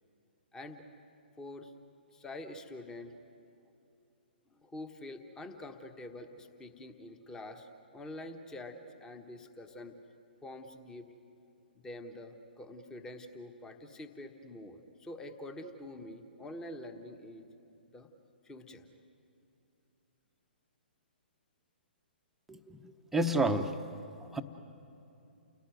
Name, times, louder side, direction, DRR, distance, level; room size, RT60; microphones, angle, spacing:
voice 1, 0.5-0.9 1.4-1.7 2.1-3.1 4.6-9.9 10.4-11.1 11.7-17.5 17.9-18.1 18.4-18.9, left 1 dB, 10° left, 7 dB, 1.4 m, -46 dB
voice 2, 22.5-23.7 24.3-24.4, right 1 dB, 5° right, 5 dB, 1.0 m, -30 dB
29.5 x 17.5 x 9.4 m, 2.7 s
figure-of-eight pair, 125°, 6 cm